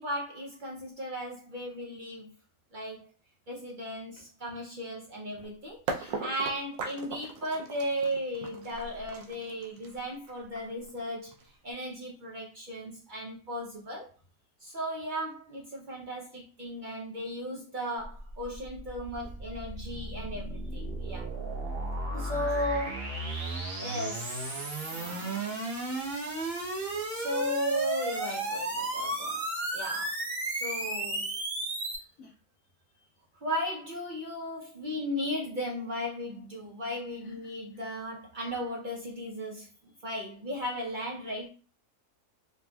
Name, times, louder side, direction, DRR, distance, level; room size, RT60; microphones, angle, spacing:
voice 1, 0.0-2.3 2.7-3.1 3.5-11.3 11.6-14.1 14.6-21.3 22.1-23.1 23.4-25.6 27.1-29.4 29.7-30.1 30.5-31.3 33.4-41.5, equal, 65° right, -2 dB, 0.5 m, -36 dB
sound 1, 5.9-11.7, right 4 dB, 80° right, 1.1 m, -39 dB
voice 2, 6.0-6.4 19.9-20.0 20.5-20.6 22.2-22.4 31.4-32.3 32.9-33.1 37.2-37.9 39.9-40.0, left 3 dB, 65° left, -3 dB, 1.2 m, -58 dB
sound 2, 18.0-32.0, right 2 dB, 40° right, 0.9 m, -34 dB
4.3 x 2.5 x 2.2 m, 0.36 s
omnidirectional pair, 1.6 m